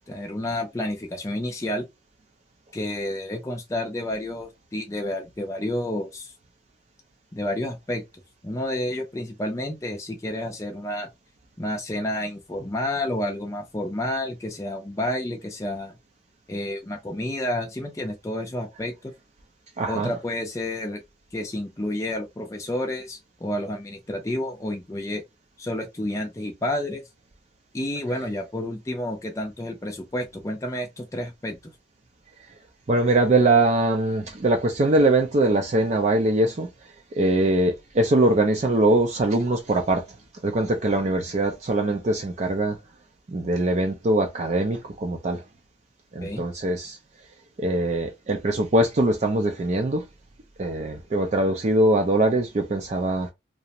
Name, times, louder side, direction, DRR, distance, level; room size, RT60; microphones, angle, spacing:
voice 1, 0.1-1.9 2.7-6.3 7.3-8.0 8.4-11.1 11.6-15.9 16.5-19.1 19.9-21.0 21.3-25.2 25.6-27.0 27.7-31.6 46.2-46.5, left 1 dB, 15° left, 0.4 m, -30 dB
voice 2, 19.8-20.1 32.9-36.7 37.2-40.0 40.4-42.8 43.3-45.4 46.1-47.0 47.6-50.1 50.6-53.3, right 2 dB, 40° right, 0.4 m, -22 dB
2.4 x 2.0 x 2.8 m
head